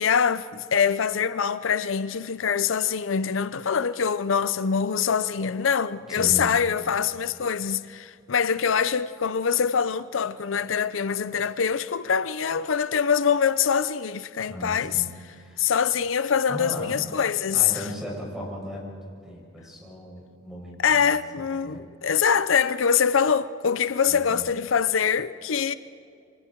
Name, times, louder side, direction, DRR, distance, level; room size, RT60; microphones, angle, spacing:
voice 1, 0.0-15.0 15.6-17.9 20.8-25.7, left 7 dB, 85° left, 0.6 m, -24 dB
voice 2, 6.1-6.6 14.5-15.6 16.5-16.9 17.5-19.0 19.2-21.9 24.1-24.5, equal, 5° right, 6.9 m, -37 dB
29.0 x 24.5 x 4.6 m
head